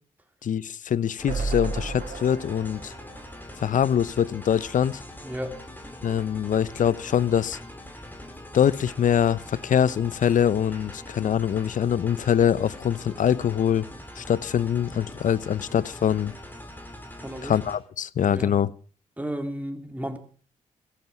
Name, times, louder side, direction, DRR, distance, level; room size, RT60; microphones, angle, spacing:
voice 1, 0.4-2.9 3.6-5.0 6.0-7.6 8.5-13.9 14.2-16.3 17.4-18.7, left 9 dB, 60° left, 0.7 m, -23 dB
sound 1, 1.2-17.8, left 1 dB, 15° left, 4.1 m, -42 dB
sound 2, 1.3-4.5 4.9-5.0 5.2-5.3, right 3 dB, 75° right, 4.9 m, -34 dB
voice 2, 5.2-5.6 17.2-17.5 18.3-18.6 19.2-20.2, equal, 10° right, 3.9 m, -33 dB
16.0 x 15.0 x 6.0 m
supercardioid pair, 55°, 15 cm